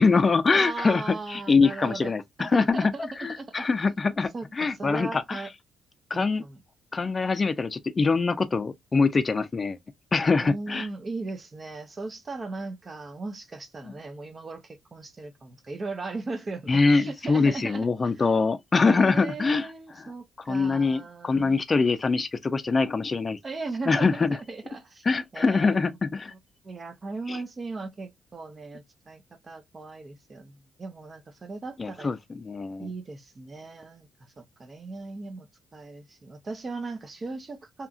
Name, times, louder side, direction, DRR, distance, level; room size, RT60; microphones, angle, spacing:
voice 1, 0.0-2.9 3.2-5.4 6.1-6.4 6.9-9.8 10.1-10.9 13.8-13.9 16.7-19.7 20.0-20.1 20.5-23.4 23.9-24.4 25.1-26.3 27.3-27.4 31.8-32.9, left 4 dB, 30° left, 0.4 m, -24 dB
voice 2, 0.5-3.7 4.3-5.5 6.1-6.6 10.4-18.1 18.7-21.6 23.4-25.0 25.3-25.9 26.3-26.4 26.6-32.1 32.8-34.1 34.4-37.9, right 3 dB, 35° right, 0.6 m, -37 dB
2.8 x 2.3 x 2.4 m
cardioid pair, 90°, 0 cm